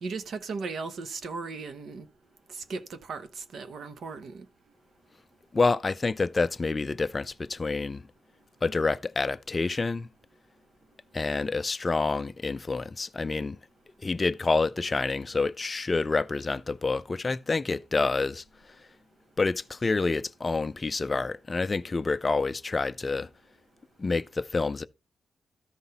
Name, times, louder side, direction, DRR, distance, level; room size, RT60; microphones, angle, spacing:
voice 1, 0.0-2.1 2.5-4.4, right 4 dB, 60° right, 1.0 m, -37 dB
voice 2, 5.5-8.0 8.6-10.1 11.1-13.6 14.0-18.4 19.4-23.3 24.0-24.8, left 3 dB, 25° left, 0.4 m, -28 dB
13.5 x 5.8 x 4.1 m
wide cardioid pair, 140°, 0 cm